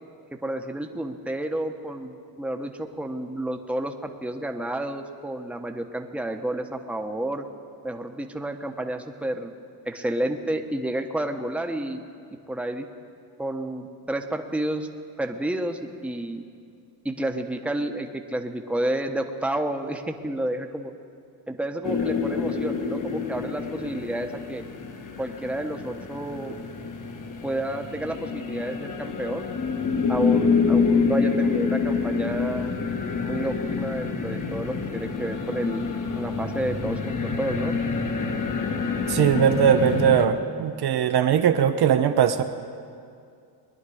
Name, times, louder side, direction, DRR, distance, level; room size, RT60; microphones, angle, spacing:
voice 1, 0.3-7.4 7.8-9.5 9.8-12.0 12.5-12.9 13.4-14.9 15.2-16.4 17.0-20.9 21.5-24.6 25.2-26.6 27.4-29.5 30.1-32.7 33.2-35.9 36.2-37.7, right 1 dB, 5° right, 4 dB, 1.1 m, -30 dB
sound 1, 21.8-40.3, left 5 dB, 45° left, 1.5 m, -27 dB
voice 2, 39.1-42.4, right 9 dB, 55° right, 7 dB, 0.9 m, -20 dB
21.5 x 10.5 x 5.0 m, 2.4 s
supercardioid pair, 80°, 45 cm